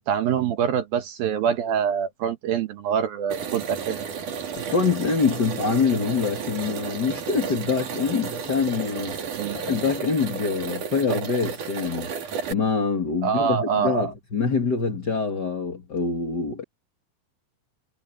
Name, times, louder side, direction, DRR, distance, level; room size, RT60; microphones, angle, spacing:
voice 1, 0.0-4.0 9.4-9.6 13.2-14.1, right 8 dB, 70° right, 2.3 m, -25 dB
sound 1, 3.3-12.5, right 6 dB, 50° right, 3.3 m, -32 dB
voice 2, 4.6-9.2 9.5-12.1 12.5-16.6, left 5 dB, 85° left, 0.9 m, -25 dB
omnidirectional pair, 5.6 m